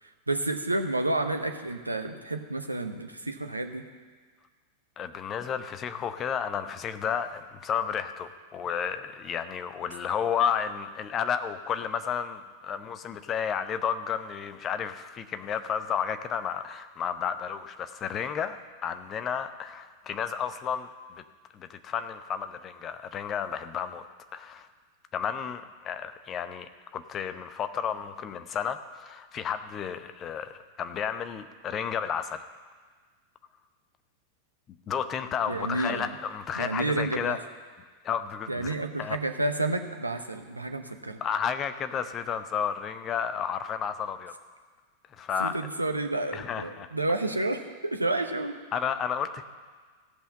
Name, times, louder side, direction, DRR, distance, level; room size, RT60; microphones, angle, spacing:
voice 1, 0.3-3.8 35.5-36.1 36.6-37.4 38.5-41.2 45.4-48.6, right 2 dB, 85° right, 6 dB, 0.8 m, -30 dB
voice 2, 5.0-18.6 18.8-20.9 21.5-24.0 24.3-24.7 25.1-32.4 34.9-37.4 38.0-39.2 41.2-44.3 45.2-45.6 46.3-46.9 48.7-49.4, left 7 dB, 30° left, 10 dB, 0.7 m, -32 dB
15.5 x 5.7 x 7.5 m, 1.5 s
figure-of-eight pair, 90°, 0 cm